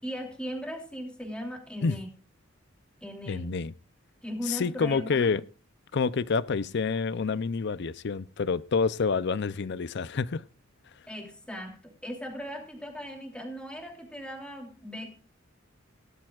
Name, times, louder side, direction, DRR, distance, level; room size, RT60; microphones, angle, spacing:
voice 1, 0.0-2.1 3.0-3.6 4.2-5.3 11.1-11.8 12.0-15.1, equal, 5° left, 3.1 m, -38 dB
voice 2, 3.3-3.7 4.4-5.4 5.9-10.4, left 5 dB, 55° left, 0.5 m, -28 dB
18.0 x 12.0 x 2.4 m
head